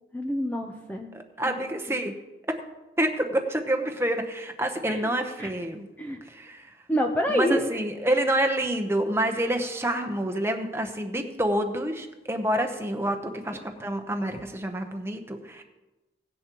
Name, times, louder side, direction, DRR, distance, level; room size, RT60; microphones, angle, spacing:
voice 1, 0.1-1.1 1.4-1.6 4.9-5.1 5.4-5.5 6.0-6.2 6.9-7.7, equal, 10° left, 2 dB, 0.7 m, -27 dB
voice 2, 1.1-2.1 3.0-5.9 6.2-6.8 7.3-15.6, right 1 dB, 15° right, 5 dB, 0.9 m, -28 dB
17.0 x 10.5 x 3.0 m, 1.1 s
head